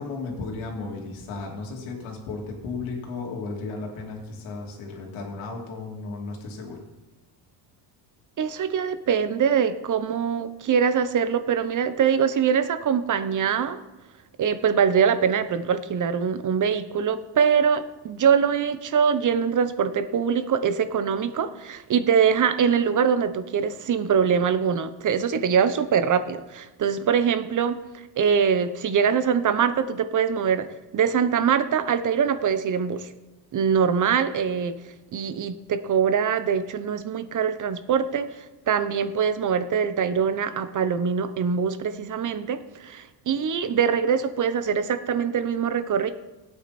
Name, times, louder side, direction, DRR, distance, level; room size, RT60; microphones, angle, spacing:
voice 1, 0.0-6.8, left 3 dB, 80° left, 0 dB, 2.9 m, -34 dB
voice 2, 8.4-13.8 14.4-27.8 28.2-30.7 30.9-33.1 33.5-34.8 35.1-38.4 38.7-46.1, right 7 dB, 40° right, 11 dB, 1.0 m, -23 dB
16.5 x 8.9 x 4.3 m, 1.1 s
cardioid pair, 100°, 47 cm